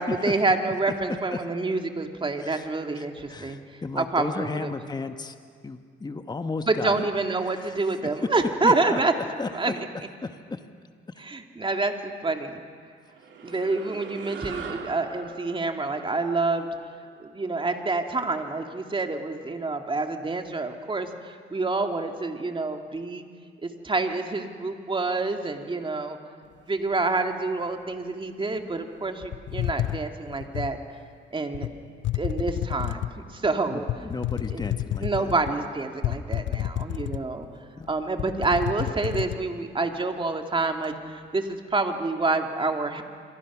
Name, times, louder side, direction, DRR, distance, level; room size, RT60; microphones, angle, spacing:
voice 1, 0.0-3.6 3.9-4.7 6.7-9.1 9.5-9.9 11.2-12.6 13.4-16.7 17.2-23.3 23.6-26.2 26.7-30.8 31.3-31.7 32.1-33.9 34.5-34.6 35.0-37.5 37.9-43.0, right 3 dB, 25° right, 4 dB, 2.2 m, -27 dB
voice 2, 3.0-5.3 5.6-7.0 7.4-7.8 8.6-9.0 9.4-9.5 10.2-10.6 33.7-35.3 37.8-37.9, left 3 dB, 20° left, 8 dB, 1.2 m, -34 dB
sound 1, 13.1-17.8, right 6 dB, 70° right, 2.6 m, -42 dB
sound 2, 29.3-30.8 31.5-31.7 32.0-33.2 33.9-35.5 36.0-37.5 37.8-37.9 38.2-39.4, left 12 dB, 65° left, 0.7 m, -30 dB
26.0 x 23.0 x 6.1 m, 2.1 s
cardioid pair, 90°, 20 cm